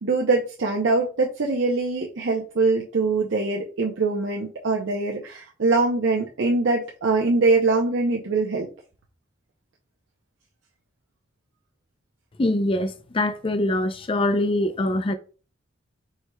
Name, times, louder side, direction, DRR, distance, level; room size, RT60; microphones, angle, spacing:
voice 1, 0.0-8.7, right 3 dB, 85° right, 0.6 m, -23 dB
voice 2, 12.4-15.2, left 1 dB, 30° left, 0.4 m, -23 dB
4.7 x 4.5 x 2.2 m
head